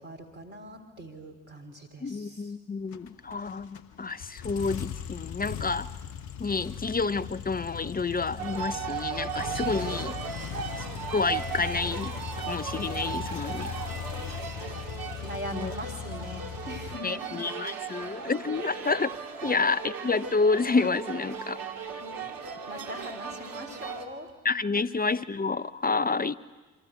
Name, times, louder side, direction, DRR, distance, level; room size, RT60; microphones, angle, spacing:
voice 1, 0.0-2.5 10.2-10.5 14.1-14.9 15.2-17.3 19.4-19.5 22.0-24.3, equal, 85° right, 2 dB, 3.2 m, -42 dB
voice 2, 2.0-5.9 6.4-10.1 10.8-10.9 11.1-13.7 15.5-15.7 17.0-19.1 19.4-21.6 24.4-26.4, left 4 dB, 20° left, 15 dB, 0.9 m, -29 dB
sound 1, 2.9-17.0, left 8 dB, 65° left, 1.4 m, -38 dB
sound 2, 8.4-24.0, right 6 dB, 55° right, 2.6 m, -37 dB
26.5 x 25.5 x 8.9 m, 1.2 s
figure-of-eight pair, 45°, 40 cm